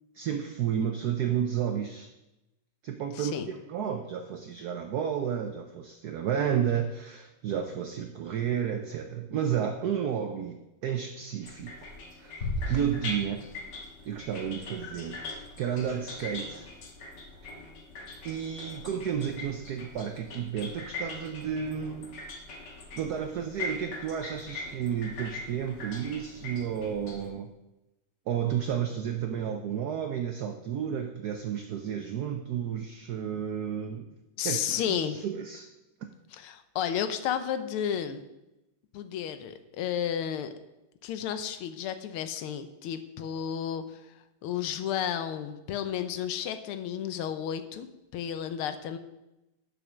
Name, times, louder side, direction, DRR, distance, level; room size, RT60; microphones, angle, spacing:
voice 1, 0.1-2.1 2.8-11.9 12.2-13.4 14.1-16.7 17.4-17.6 18.2-22.1 23.0-27.5 28.3-34.1 34.4-35.7, right 8 dB, 85° right, 6 dB, 0.8 m, -32 dB
voice 2, 3.1-3.5 34.4-35.2 36.3-38.2 38.9-40.5 41.0-44.0 44.4-47.9 48.1-49.0, left 9 dB, 85° left, 10 dB, 1.6 m, -32 dB
sound 1, 11.4-27.3, left 3 dB, 60° left, 1.7 m, -42 dB
sound 2, 12.4-14.0, left 2 dB, 40° left, 2.7 m, -35 dB
6.9 x 5.7 x 6.2 m, 0.96 s
omnidirectional pair, 2.3 m